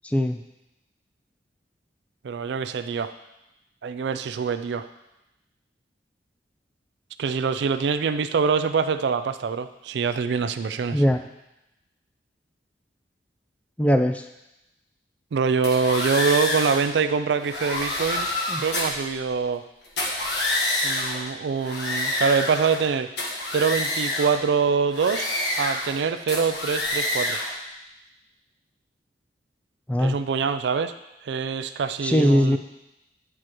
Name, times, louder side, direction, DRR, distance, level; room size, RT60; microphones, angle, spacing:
voice 1, 0.0-0.4 10.9-11.2 13.8-14.2 18.5-18.6 29.9-30.2 32.0-32.6, equal, 10° left, 6 dB, 0.3 m, -20 dB
voice 2, 2.2-3.1 3.8-4.9 7.2-11.0 15.3-18.3 18.6-19.6 20.8-23.1 23.5-25.3 25.5-27.4 30.0-30.9 31.2-32.6, right 5 dB, 75° right, 11 dB, 0.4 m, -24 dB
sound 1, 15.6-16.9 17.4-19.0 19.8-21.2 21.6-22.9 23.2-24.4 24.9-26.0 26.3-27.5, left 2 dB, 70° left, 1.3 m, -27 dB
9.9 x 4.6 x 3.0 m, 0.93 s
head